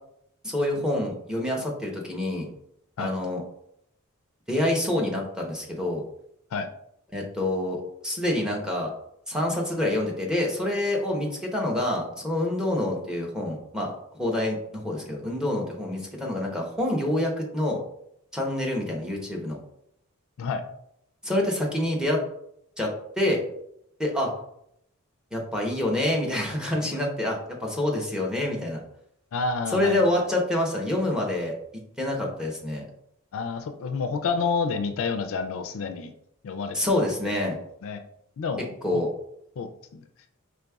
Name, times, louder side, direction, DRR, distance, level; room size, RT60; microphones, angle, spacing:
voice 1, 0.4-2.5 3.0-3.4 4.5-6.0 7.1-8.9 9.3-17.8 18.3-19.6 21.2-22.2 22.8-22.9 23.2-23.4 24.0-24.3 25.3-28.8 29.7-31.5 32.0-32.8 36.7-37.6 38.8-39.1, left 1 dB, 5° right, -1 dB, 0.8 m, -27 dB
voice 2, 29.3-30.2 33.3-36.1 36.4-36.8 37.8-38.0 38.4-39.0 39.6-40.0, left 4 dB, 65° left, 7 dB, 0.4 m, -29 dB
5.1 x 3.4 x 2.3 m, 0.75 s
head